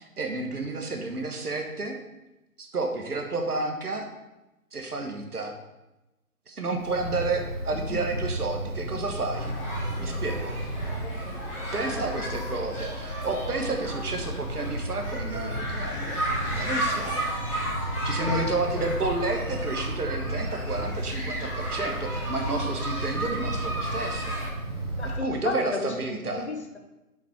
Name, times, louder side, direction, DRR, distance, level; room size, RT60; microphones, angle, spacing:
voice 1, 0.2-2.0 2.6-4.1 4.7-5.5 6.5-9.5 10.0-10.6 11.7-16.2 16.5-17.2 18.0-24.4 25.0-26.5, right 3 dB, 80° right, 3 dB, 1.4 m, -31 dB
Wind, 6.8-25.2, right 1 dB, 55° right, 2.7 m, -34 dB
sound 1, 9.3-24.5, equal, 20° left, 1.9 m, -34 dB
voice 2, 10.9-11.6 11.8-12.2 18.2-18.4 18.7-18.9 25.0-26.8, left 3 dB, 45° left, 4 dB, 0.9 m, -35 dB
7.1 x 4.4 x 4.8 m, 0.98 s
figure-of-eight pair, 170°, 45 cm